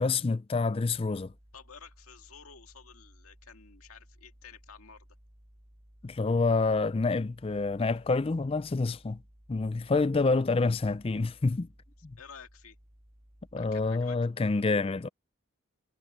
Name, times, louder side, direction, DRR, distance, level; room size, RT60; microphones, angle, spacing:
voice 1, 0.0-1.3 6.0-9.2 9.5-11.7 12.0-12.2 13.5-15.1, left 3 dB, 25° left, 0.4 m, -27 dB
sound 1, 0.8-14.2, equal, 30° right, 2.1 m, -58 dB
voice 2, 1.5-5.1 9.8-9.9 12.2-12.8 13.6-14.2, left 6 dB, 90° left, 2.1 m, -51 dB
head